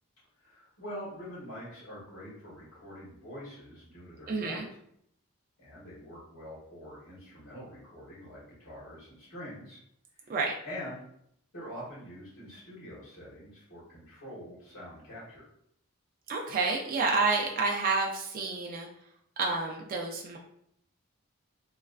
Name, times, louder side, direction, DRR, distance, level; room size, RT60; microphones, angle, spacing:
voice 1, 0.4-4.6 5.6-9.8 10.1-10.4 10.6-11.0 11.5-15.5, equal, 85° left, -9 dB, 1.5 m, -45 dB
voice 2, 4.3-4.6 10.3-10.5 16.3-18.9 19.4-20.4, right 3 dB, 40° right, 0 dB, 0.3 m, -29 dB
3.1 x 2.4 x 2.3 m, 0.70 s
head